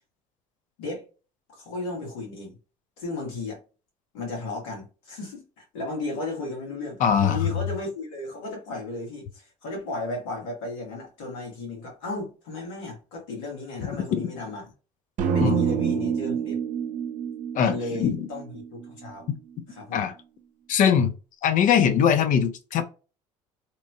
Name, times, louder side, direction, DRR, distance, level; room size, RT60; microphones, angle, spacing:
voice 1, 1.5-2.6 3.0-3.6 4.1-14.6 15.3-16.6 17.5-19.3 19.7-20.1, left 2 dB, 85° left, 1.4 m, -34 dB
voice 2, 7.0-7.5 14.2-14.3 15.4-15.6 17.5-18.3 19.9-20.1 20.7-21.1 21.4-22.8, left 8 dB, 55° left, 0.5 m, -21 dB
sound 1, 15.2-19.3, right 8 dB, 50° right, 0.6 m, -28 dB
2.9 x 2.2 x 2.7 m
hypercardioid pair, 70°, 16 cm